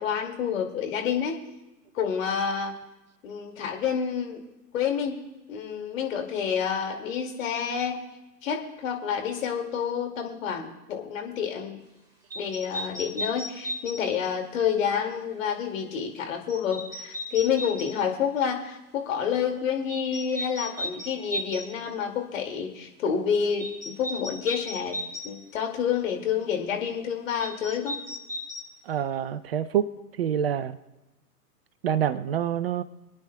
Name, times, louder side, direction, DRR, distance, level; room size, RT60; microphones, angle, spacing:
voice 1, 0.0-1.4 1.9-2.7 3.2-4.4 4.7-5.2 5.5-8.0 8.4-11.8 12.3-25.0 25.2-28.0, left 7 dB, 55° left, 3 dB, 2.4 m, -28 dB
sound 1, 12.3-14.0 16.5-18.0 19.9-21.7 23.6-25.3 27.4-28.7, equal, 5° right, 3.0 m, -35 dB
voice 2, 28.9-29.9 30.2-30.8 31.8-32.8, right 9 dB, 40° right, 14 dB, 0.6 m, -26 dB
29.0 x 9.7 x 2.3 m, 1.0 s
figure-of-eight pair, 115°, 48 cm